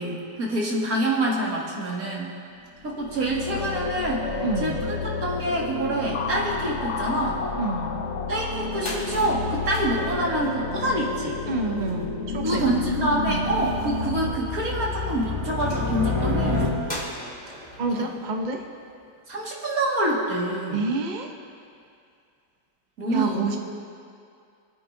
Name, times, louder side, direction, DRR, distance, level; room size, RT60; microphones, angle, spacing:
voice 1, 0.0-2.3 2.8-5.0 5.2-7.4 8.3-11.4 12.4-16.6 17.9-18.1 19.3-20.9 23.0-23.6, right 1 dB, 55° right, -4 dB, 2.3 m, -26 dB
sound 1, 2.7-14.3, left 3 dB, 55° left, 0.9 m, -31 dB
voice 2, 4.4-4.8 7.6-8.0 11.5-12.7 13.3-13.5 17.8-18.6 20.7-21.3 23.1-23.6, right 3 dB, 40° right, 3 dB, 0.7 m, -28 dB
sound 2, 8.3-8.4 8.6-19.4, equal, 25° left, 2.1 m, -42 dB
sound 3, 12.2-17.2, left 3 dB, 20° right, 1.6 m, -29 dB
25.5 x 9.5 x 2.7 m, 2.3 s
omnidirectional pair, 1.8 m